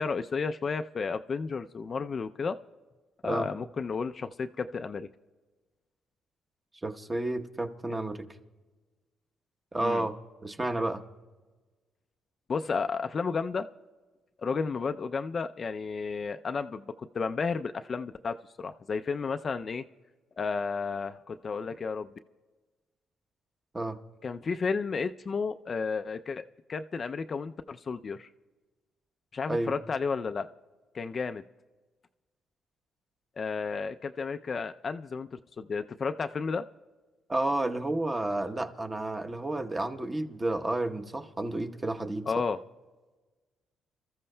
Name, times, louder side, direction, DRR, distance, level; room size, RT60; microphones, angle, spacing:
voice 1, 0.0-2.6 3.2-5.1 9.8-10.1 12.5-13.7 14.4-19.8 20.4-22.1 24.2-28.3 29.3-30.5 30.9-31.4 33.4-36.6 42.3-42.6, left 5 dB, 40° left, 9 dB, 0.4 m, -32 dB
voice 2, 6.8-8.2 9.7-10.2 10.4-11.0 23.7-24.0 29.5-29.7 37.3-42.3, right 2 dB, 20° right, 5 dB, 0.9 m, -31 dB
28.5 x 14.0 x 2.2 m, 1.3 s
cardioid pair, 90°, 0 cm